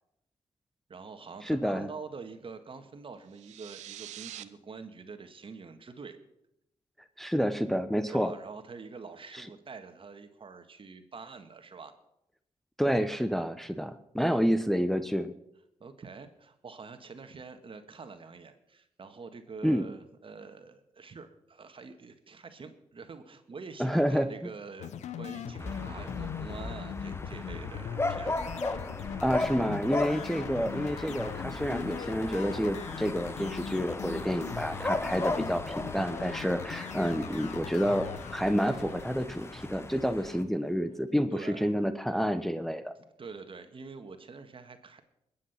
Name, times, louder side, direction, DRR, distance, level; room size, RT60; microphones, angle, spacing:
voice 1, 0.9-6.2 8.1-11.9 14.3-14.4 15.8-24.9 25.2-28.5 41.3-41.7 43.2-45.0, right 4 dB, 50° right, 8 dB, 1.8 m, -46 dB
voice 2, 1.4-1.9 7.2-8.3 9.3-9.4 12.8-15.3 19.6-19.9 23.8-24.3 29.2-42.9, equal, ahead, 9 dB, 1.0 m, -29 dB
sound 1, 3.3-4.4, right 13 dB, 85° right, 0.6 m, -44 dB
sound 2, 24.8-40.2, left 9 dB, 80° left, 0.9 m, -41 dB
sound 3, 25.6-40.4, left 2 dB, 20° left, 1.2 m, -37 dB
21.0 x 8.7 x 5.8 m, 0.83 s
supercardioid pair, 50°, 12 cm